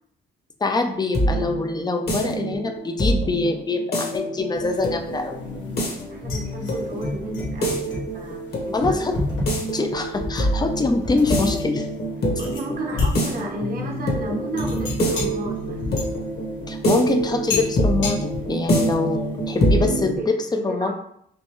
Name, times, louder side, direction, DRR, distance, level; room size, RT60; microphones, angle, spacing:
voice 1, 0.6-5.4 8.7-9.1 9.7-11.9 16.7-19.2 19.5-20.4 20.6-20.9, left 3 dB, 20° left, 5 dB, 0.6 m, -24 dB
sound 1, 0.7-20.2, right 1 dB, 55° left, 1.5 m, -26 dB
sound 2, 4.5-19.7, left 3 dB, 75° left, 1.3 m, -31 dB
voice 2, 5.6-9.0 12.4-16.0 18.6-18.9 19.5-20.2 20.5-20.9, right 2 dB, 50° right, 0 dB, 1.1 m, -34 dB
5.3 x 2.3 x 3.1 m, 0.69 s
cardioid pair, 90°, 20 cm